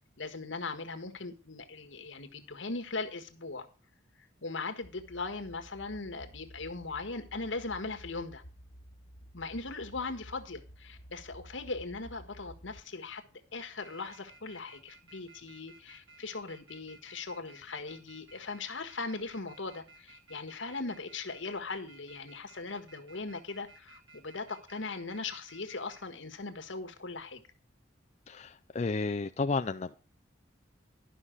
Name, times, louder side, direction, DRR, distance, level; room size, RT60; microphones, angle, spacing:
voice 1, 0.2-3.7 4.4-8.4 9.3-13.2 13.5-27.4, left 3 dB, 85° left, 1.5 m, -39 dB
sound 1, 4.8-12.8, equal, 65° left, 1.7 m, -52 dB
sound 2, 10.7-11.1 11.7-12.4 12.8-13.2 13.5-26.0, right 3 dB, 85° right, 2.7 m, -57 dB
voice 2, 28.3-29.9, left 3 dB, 35° left, 0.4 m, -32 dB
12.0 x 5.6 x 6.3 m
head